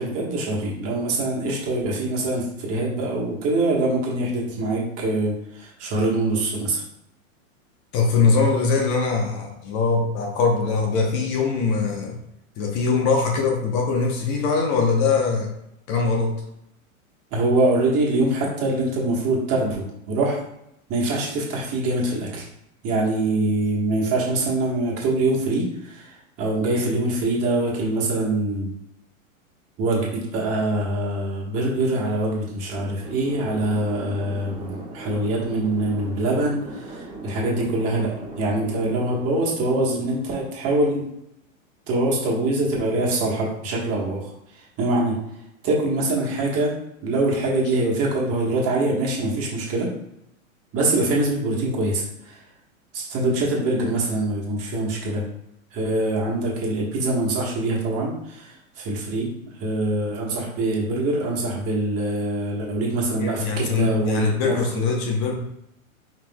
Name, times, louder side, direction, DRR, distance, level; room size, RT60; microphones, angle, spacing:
voice 1, 0.0-6.8 17.3-20.4 20.9-22.4 22.8-28.7 29.8-41.1 41.9-45.1 45.6-46.7 47.0-49.9 50.7-52.4 52.9-55.2 55.7-59.3 59.5-64.8, right 2 dB, 35° right, -3 dB, 1.5 m, -24 dB
voice 2, 7.9-12.1 12.6-15.5 15.9-16.3 63.2-65.4, left 4 dB, 40° left, 1 dB, 1.0 m, -22 dB
sound 1, 32.7-41.0, right 2 dB, 10° right, 1.4 m, -39 dB
5.0 x 3.6 x 2.3 m, 0.80 s
hypercardioid pair, 115°, 41 cm